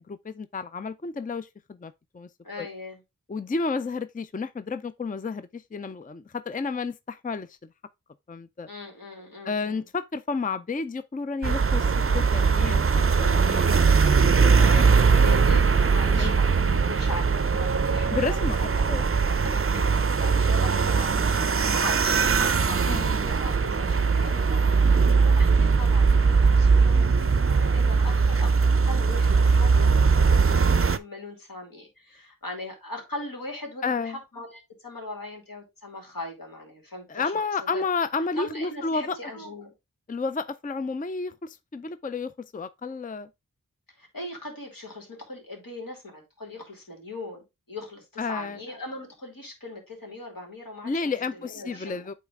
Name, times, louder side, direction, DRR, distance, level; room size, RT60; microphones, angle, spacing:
voice 1, 0.2-2.3 2.6-2.7 3.3-7.6 8.3-8.7 9.4-13.7 14.0-14.8 16.0-16.4 18.1-19.0 22.9-23.1 33.8-34.2 37.1-39.2 40.1-43.3 48.2-48.6 50.8-52.1, left 4 dB, 25° left, 0.4 m, -31 dB
voice 2, 2.4-3.0 8.7-9.8 15.1-18.9 19.4-21.4 21.7-28.5 28.8-37.4 37.7-37.8 38.4-39.7 44.0-52.0, left 2 dB, 80° left, 2.6 m, -40 dB
sound 1, 11.4-31.0, right 5 dB, 40° right, 0.5 m, -20 dB
8.5 x 3.3 x 3.6 m
wide cardioid pair, 40°, 34 cm